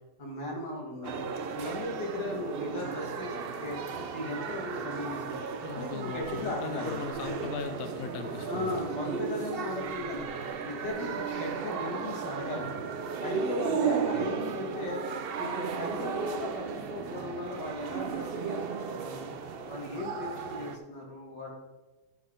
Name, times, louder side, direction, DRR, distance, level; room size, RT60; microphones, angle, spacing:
voice 1, 0.2-1.3 1.5-3.8 4.1-5.4 5.7-7.0 8.2-10.3 10.6-12.8 13.2-15.0 15.4-18.7 18.9-19.3 19.7-21.5, left 2 dB, 85° left, -1 dB, 2.5 m, -37 dB
sound 1, 1.0-20.8, right 6 dB, 85° right, 0.5 m, -35 dB
voice 2, 5.6-8.9 14.1-14.3, left 6 dB, 65° left, 7 dB, 1.1 m, -38 dB
12.0 x 6.1 x 3.7 m, 1.2 s
omnidirectional pair, 1.8 m